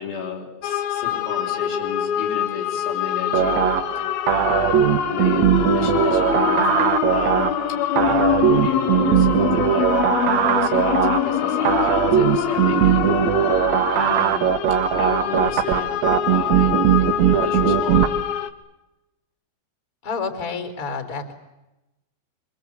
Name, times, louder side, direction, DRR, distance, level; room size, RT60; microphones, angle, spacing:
voice 1, 0.0-3.7 4.0-4.7 5.1-7.5 7.9-13.7 13.9-14.5 14.9-16.0 16.3-18.2, left 6 dB, 85° left, 0 dB, 7.1 m, -33 dB
sound 1, 0.6-18.5, left 10 dB, 70° left, 3.0 m, -24 dB
sound 2, 3.3-18.1, right 10 dB, 80° right, 1.6 m, -20 dB
voice 2, 20.0-21.3, left 4 dB, 20° left, 6 dB, 3.7 m, -29 dB
25.5 x 25.5 x 8.5 m, 0.97 s
omnidirectional pair, 4.8 m